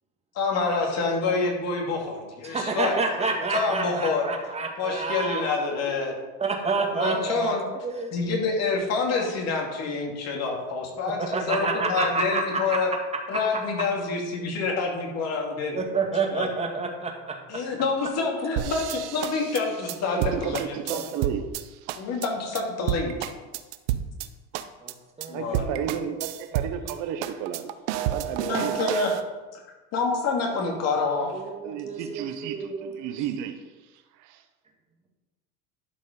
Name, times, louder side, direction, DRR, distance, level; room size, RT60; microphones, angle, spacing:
voice 1, 0.3-3.0 3.5-4.2 4.8-6.1 6.9-7.6 8.1-12.9 13.3-15.8 16.3-16.5 17.5-21.0 22.0-23.3 25.3-25.8 28.4-29.2 29.5-29.6 29.9-31.4, left 4 dB, 50° left, 2.7 m, -27 dB
voice 2, 2.4-5.4 6.4-7.5 7.8-8.1 11.3-12.8 15.7-17.3 24.8-24.9 25.2-26.0 26.5-26.6 31.3-33.0, right 4 dB, 20° right, 1.8 m, -29 dB
sound 1, 18.6-21.6 21.9-22.3 22.5-22.6 22.9-24.3 24.5-24.9 25.2-25.3 25.5-26.9 27.2-29.2, right 12 dB, 85° right, 0.7 m, -30 dB
voice 3, 20.2-22.2 25.3-27.7 28.0-29.0 31.6-33.6 34.2-34.4, right 9 dB, 60° right, 1.0 m, -33 dB
11.5 x 5.3 x 5.3 m
supercardioid pair, 120°, 34 cm